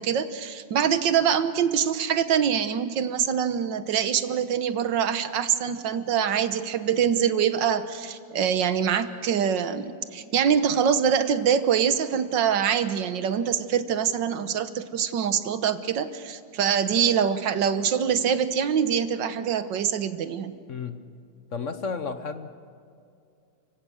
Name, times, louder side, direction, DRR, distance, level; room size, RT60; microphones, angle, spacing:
voice 1, 0.0-20.5, right 8 dB, 65° right, 11 dB, 1.7 m, -24 dB
voice 2, 20.7-21.0 21.5-22.5, left 5 dB, 55° left, 9 dB, 0.9 m, -32 dB
30.0 x 16.5 x 6.4 m, 2.4 s
omnidirectional pair, 2.2 m